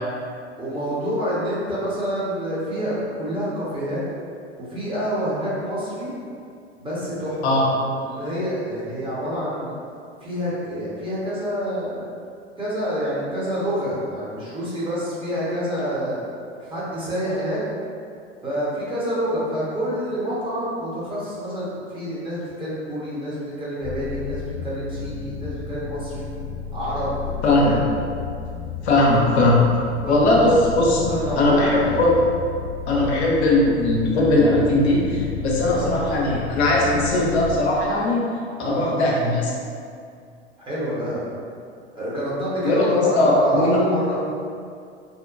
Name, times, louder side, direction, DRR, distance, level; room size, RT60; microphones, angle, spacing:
voice 1, 0.6-4.0 4.6-6.1 6.8-9.7 10.2-12.1 12.6-16.2 16.7-17.6 18.4-26.3 26.7-27.8 29.1-29.2 30.0-30.5 31.1-32.0 32.9-33.1 35.7-35.9 38.6-38.9 40.7-41.2 41.9-44.2, equal, 15° right, -9 dB, 0.9 m, -27 dB
sound 1, 23.8-37.4, left 5 dB, 40° right, 1.0 m, -32 dB
voice 2, 27.4-27.8 28.8-29.6 30.1-31.0 31.4-32.1 32.9-38.2 38.7-39.5 42.6-43.8, left 2 dB, 70° left, -4 dB, 0.6 m, -19 dB
2.7 x 2.2 x 2.4 m, 2.3 s
figure-of-eight pair, 85°, 34 cm